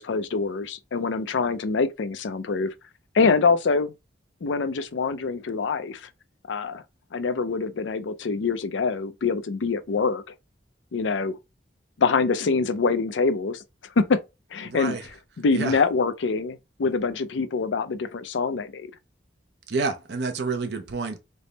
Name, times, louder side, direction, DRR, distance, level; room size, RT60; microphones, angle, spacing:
voice 1, 0.0-2.7 3.1-3.9 4.4-6.1 6.5-6.8 7.1-10.2 10.9-11.4 12.0-13.6 14.0-14.2 14.5-15.0 15.4-18.9, left 4 dB, 85° left, 0.5 m, -25 dB
voice 2, 14.6-15.0 15.5-15.8 19.7-21.2, right 4 dB, 65° right, 0.5 m, -29 dB
3.4 x 2.0 x 4.0 m
head